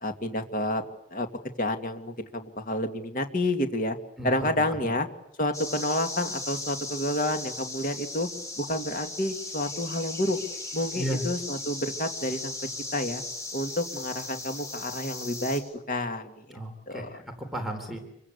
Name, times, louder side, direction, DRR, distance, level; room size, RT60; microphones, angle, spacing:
voice 1, 0.0-0.8 1.1-1.3 1.6-4.0 4.2-5.1 5.4-8.3 8.6-10.4 10.7-12.5 12.9-13.2 13.5-15.6 15.9-16.6 16.9-17.2, left 1 dB, 50° left, 6 dB, 2.4 m, -29 dB
sound 1, 5.5-15.6, left 2 dB, 20° left, 7.0 m, -37 dB
voice 2, 16.5-18.0, equal, ahead, 2 dB, 3.7 m, -34 dB
27.5 x 23.5 x 8.2 m, 0.80 s
head